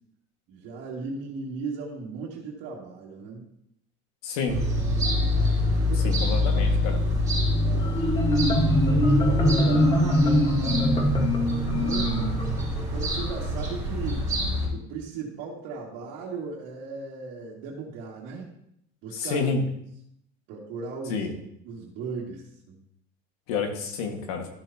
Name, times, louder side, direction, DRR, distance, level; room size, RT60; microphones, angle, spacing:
voice 1, 0.5-3.4 5.9-6.3 7.6-8.0 8.8-10.3 10.5-11.3 11.7-12.3 12.8-14.3 14.7-18.5 19.0-19.5 20.5-21.3 21.6-22.8, right 4 dB, 65° right, -6 dB, 2.3 m, -37 dB
voice 2, 4.2-4.6 6.0-7.0 19.1-19.6 21.1-21.3 23.5-24.5, left 5 dB, 90° left, 3 dB, 1.8 m, -29 dB
sound 1, 4.5-14.7, left 1 dB, 20° right, 4.0 m, -26 dB
Marimba xylophone, 7.8-13.4, left 1 dB, 25° left, 1.4 m, -23 dB
13.5 x 6.9 x 2.9 m, 0.73 s
cardioid pair, 135°, 19 cm